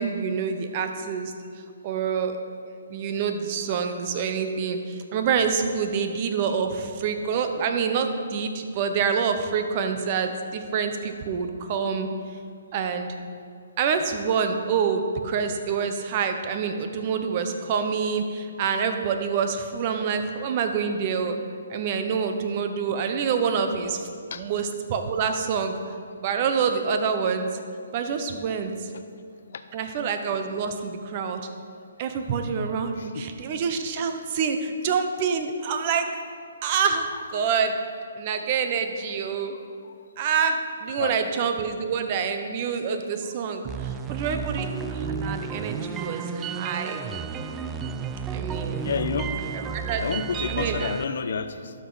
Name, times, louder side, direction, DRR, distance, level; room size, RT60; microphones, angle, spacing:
voice 1, 0.0-1.3 1.8-2.4 2.9-12.1 12.7-13.1 13.8-21.4 21.7-24.1 24.4-25.8 26.2-27.5 27.9-28.9 29.7-31.4 32.0-36.1 36.6-37.8 38.1-39.6 40.2-47.1 48.3-48.9 49.5-50.0 50.5-50.9, right 6 dB, 35° right, 7 dB, 0.8 m, -27 dB
voice 2, 33.0-33.3 39.8-39.9 41.0-41.1 48.8-49.3 50.0-51.7, left 6 dB, 60° left, 10 dB, 0.6 m, -29 dB
sound 1, 43.6-51.0, right 6 dB, 15° right, 0.3 m, -32 dB
12.0 x 6.0 x 4.0 m, 2.3 s
hypercardioid pair, 145°, 0 cm